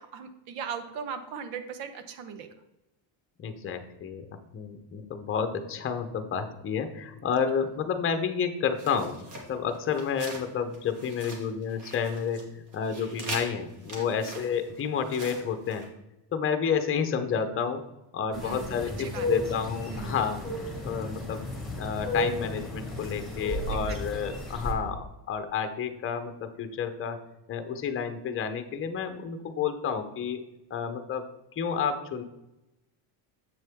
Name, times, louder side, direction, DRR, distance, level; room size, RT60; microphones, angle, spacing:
voice 1, 0.0-2.5 14.0-14.3 18.3-19.3 19.9-20.2 23.7-24.0, right 7 dB, 85° right, 9 dB, 1.2 m, -39 dB
voice 2, 3.4-4.3 4.5-9.2 9.5-15.9 16.3-17.8 18.1-21.4 21.8-27.2 27.5-30.4 30.7-31.3 31.6-32.2, left 7 dB, 25° left, 8 dB, 0.7 m, -30 dB
sound 1, 8.8-10.5 10.7-12.4 12.7-15.9, right 2 dB, 40° right, 2.0 m, -42 dB
sound 2, 18.3-24.7, left 1 dB, ahead, 1.9 m, -33 dB
7.6 x 6.4 x 3.5 m, 0.94 s
cardioid pair, 130°, 48 cm